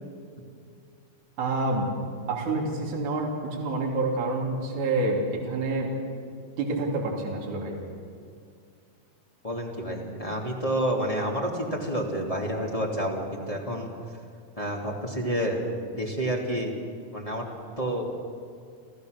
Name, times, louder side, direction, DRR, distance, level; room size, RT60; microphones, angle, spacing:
voice 1, 1.4-1.9 2.3-5.9 6.6-7.8, right 2 dB, 50° right, -2 dB, 4.3 m, -28 dB
voice 2, 9.4-13.9 14.6-16.7 17.1-17.5 17.8-18.1, right 1 dB, 10° left, -2 dB, 2.0 m, -29 dB
28.0 x 15.0 x 6.7 m, 2.4 s
omnidirectional pair, 4.5 m